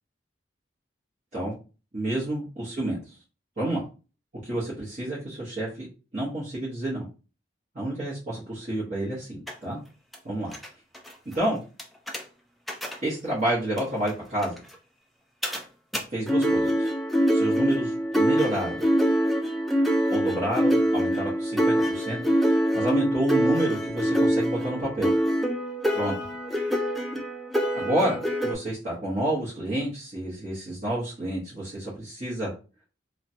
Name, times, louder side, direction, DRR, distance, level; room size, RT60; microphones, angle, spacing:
voice 1, 1.9-3.0 3.6-3.8 4.4-5.9 6.1-7.0 7.7-9.8 10.2-10.5 11.3-11.6 13.0-14.6 16.1-16.9 17.3-18.8 20.1-25.1 25.9-26.1 27.7-32.5, right 1 dB, 40° right, -9 dB, 1.0 m, -29 dB
sound 1, 9.5-9.6 10.1-10.2 10.5-10.7 10.9-11.1 11.8-12.2 12.7-13.0 13.8-13.9 14.1-14.2 14.4-14.6 15.4-15.6 15.9-16.0 16.3-28.5, equal, ahead, 0.3 m, -24 dB
3.1 x 2.1 x 2.7 m, 0.34 s
head